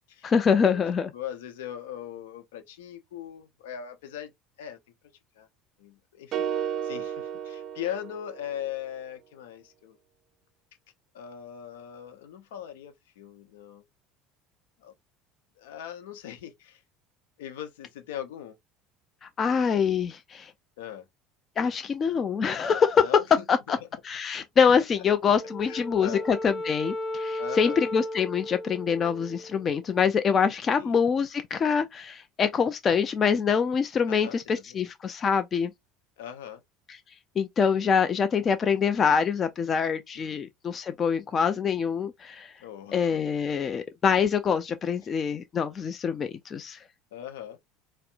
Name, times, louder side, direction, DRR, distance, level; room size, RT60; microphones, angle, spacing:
voice 1, 0.2-1.1 19.2-20.5 21.6-23.0 23.5-23.8 24.0-35.7 37.4-42.5 42.9-46.8, left 6 dB, 35° left, 0.4 m, -25 dB
voice 2, 1.1-4.3 4.6-4.8 5.4-5.5 5.8-10.0 11.1-13.8 14.8-14.9 15.6-16.8 17.4-18.5 20.8-21.0 23.0-23.8 25.6-26.3 27.4-27.8 30.8-30.9 34.1-34.8 36.2-36.6 37.8-38.1 40.1-40.5 42.6-43.2 47.1-47.6, left 10 dB, 75° left, 0.7 m, -40 dB
sound 1, 6.3-8.6, right 9 dB, 50° right, 0.5 m, -33 dB
Wind instrument woodwind instrument, 25.3-29.8, left 1 dB, 15° left, 0.9 m, -35 dB
4.2 x 2.0 x 2.4 m
hypercardioid pair, 70°, 0 cm